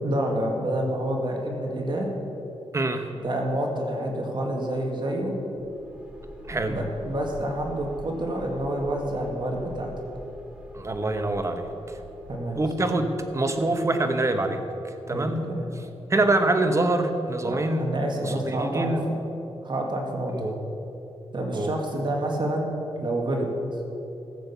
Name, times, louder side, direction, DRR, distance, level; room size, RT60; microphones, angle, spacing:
voice 1, 0.0-2.1 3.2-5.3 6.7-9.9 12.3-12.6 15.1-15.7 17.5-18.9 19.6-20.3 21.3-22.7 23.0-23.5, right 1 dB, 45° right, 1 dB, 2.0 m, -28 dB
voice 2, 2.7-3.1 6.5-6.8 10.7-11.7 12.6-15.5 16.1-17.8 18.2-19.0 20.3-20.6 21.5-21.7, right 2 dB, 30° right, 6 dB, 1.1 m, -25 dB
sound 1, 5.5-13.3, left 1 dB, 10° right, 1.9 m, -42 dB
14.5 x 7.9 x 7.0 m, 2.9 s
wide cardioid pair, 105°, 11 cm